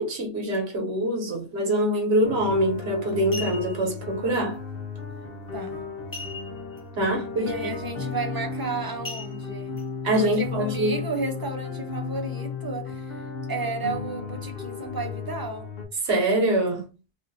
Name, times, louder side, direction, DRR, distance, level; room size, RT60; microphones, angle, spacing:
voice 1, 0.0-4.6 7.0-7.5 10.0-11.0 16.0-16.8, right 1 dB, 85° right, 1.2 m, -24 dB
sound 1, 2.2-15.9, left 5 dB, 65° left, 1.0 m, -35 dB
sound 2, 2.5-2.7 3.1-3.9 6.1-6.8 7.1-7.2 7.7-8.0 9.0-9.8 10.4-10.5, left 3 dB, 30° left, 0.4 m, -38 dB
voice 2, 5.5-5.8 7.4-9.8 10.2-13.2 13.5-15.7, right 3 dB, 30° right, 0.5 m, -33 dB
3.2 x 2.4 x 2.6 m
omnidirectional pair, 1.1 m